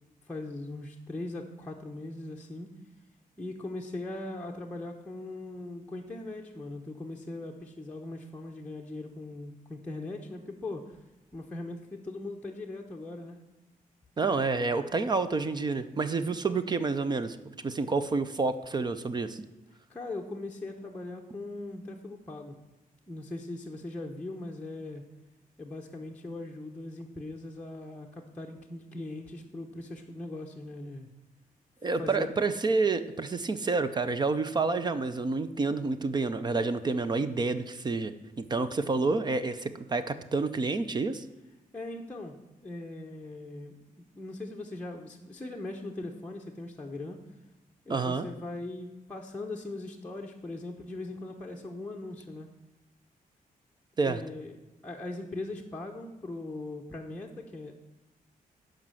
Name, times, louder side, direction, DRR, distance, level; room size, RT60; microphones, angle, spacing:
voice 1, 0.2-2.7 3.4-11.0 11.3-13.4 19.9-22.6 23.1-25.0 25.6-31.1 32.0-32.3 41.7-42.4 42.6-43.8 44.2-47.2 47.9-52.5 54.0-54.6 54.8-57.7, left 2 dB, 10° left, -1 dB, 0.8 m, -40 dB
voice 2, 14.2-17.4 17.6-19.5 31.8-41.2 47.9-48.3 54.0-54.2, right 3 dB, 30° right, 11 dB, 0.5 m, -29 dB
12.0 x 5.1 x 7.6 m, 1.1 s
wide cardioid pair, 165°, 15 cm